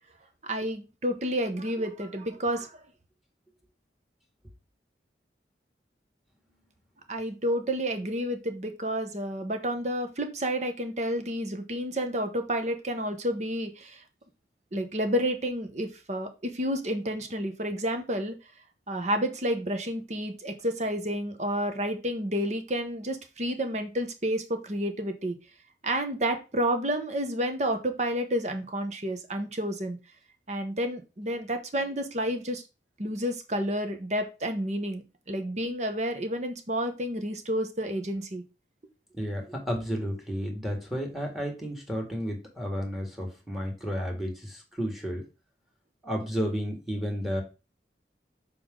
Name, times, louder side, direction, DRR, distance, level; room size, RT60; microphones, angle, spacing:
voice 1, 0.4-2.8 7.1-14.0 14.7-18.3 18.9-25.4 25.8-30.0 30.5-32.6 33.0-38.4, equal, 40° right, 7 dB, 1.0 m, -30 dB
voice 2, 39.1-45.2 46.0-47.4, equal, ahead, 2 dB, 1.8 m, -32 dB
6.9 x 4.9 x 3.8 m, 0.29 s
head